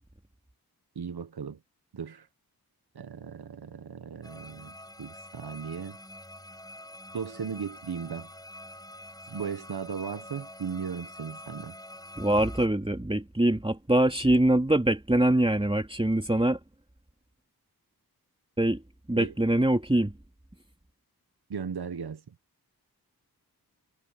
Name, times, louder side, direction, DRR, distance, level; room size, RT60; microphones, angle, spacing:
voice 1, 0.9-1.6 1.9-2.3 2.9-6.0 7.1-8.3 9.3-11.7 19.2-19.3 21.5-22.3, right 6 dB, 80° right, 1.3 m, -36 dB
sound 1, 4.2-12.7, left 1 dB, 10° left, 6.9 m, -46 dB
voice 2, 12.2-16.6 18.6-18.8 19.1-20.1, right 1 dB, 15° right, 2.8 m, -24 dB
wide cardioid pair, 60°, 38 cm